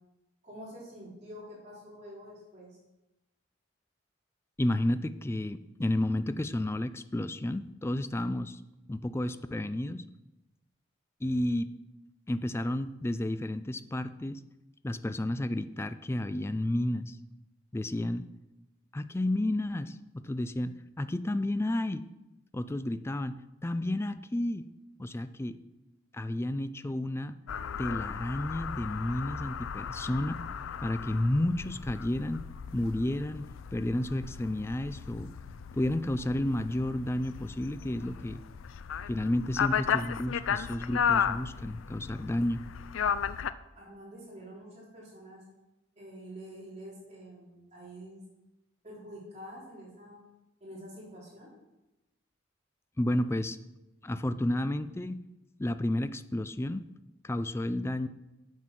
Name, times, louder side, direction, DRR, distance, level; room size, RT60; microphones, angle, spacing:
voice 1, 0.4-2.8 43.8-45.4 46.0-48.2 48.8-50.2 50.6-51.5, equal, 35° right, -6 dB, 3.6 m, -47 dB
voice 2, 4.6-8.6 8.9-10.1 11.2-11.7 12.3-14.4 14.8-17.2 17.7-18.3 18.9-22.1 22.5-23.4 23.6-24.7 25.0-25.6 26.1-27.4 27.8-30.4 30.8-32.4 32.7-35.3 35.7-38.4 39.1-42.6 53.0-53.6 54.0-55.2 55.6-56.9 57.2-58.1, left 1 dB, 15° left, 12 dB, 0.3 m, -31 dB
sound 1, 27.5-43.5, left 7 dB, 90° left, 0.4 m, -35 dB
7.6 x 7.4 x 6.0 m, 0.98 s
head